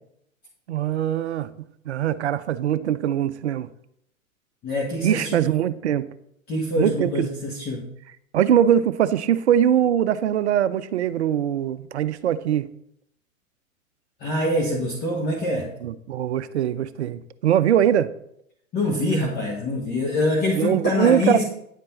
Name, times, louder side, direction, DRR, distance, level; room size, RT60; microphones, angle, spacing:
voice 1, 0.7-1.5 1.9-3.7 5.0-6.0 6.8-7.3 8.3-12.7 15.8-18.1 20.6-21.4, right 10 dB, 55° right, 14 dB, 0.6 m, -22 dB
voice 2, 4.6-5.5 6.5-7.8 14.2-15.7 18.7-21.4, left 1 dB, 25° left, -1 dB, 1.6 m, -25 dB
9.9 x 7.5 x 4.2 m, 0.74 s
figure-of-eight pair, 105°, 41 cm